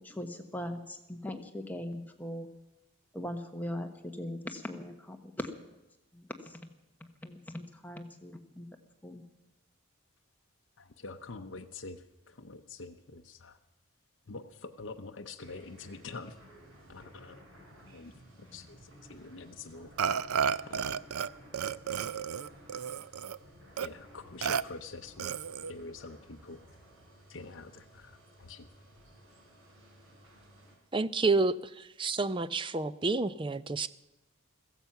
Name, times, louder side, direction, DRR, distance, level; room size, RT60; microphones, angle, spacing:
voice 1, 0.0-2.5 3.1-5.8 6.1-6.6 7.2-8.7 9.0-9.2, left 1 dB, 10° left, 4 dB, 1.2 m, -40 dB
voice 2, 10.8-13.6 14.3-16.4 16.9-17.4 17.8-18.1 18.5-19.9 20.6-21.0 23.8-26.6 27.3-28.7, left 3 dB, 55° left, 3 dB, 0.8 m, -46 dB
sound 1, 15.4-30.8, equal, 70° right, 4.8 m, -56 dB
Burping eructation, 20.0-21.3 21.5-23.4 23.8-23.9 24.4-24.6 25.2-25.7, right 7 dB, 90° right, 0.5 m, -32 dB
voice 3, 30.9-33.9, right 3 dB, 25° right, 15 dB, 0.4 m, -29 dB
15.5 x 15.0 x 5.8 m, 0.96 s
head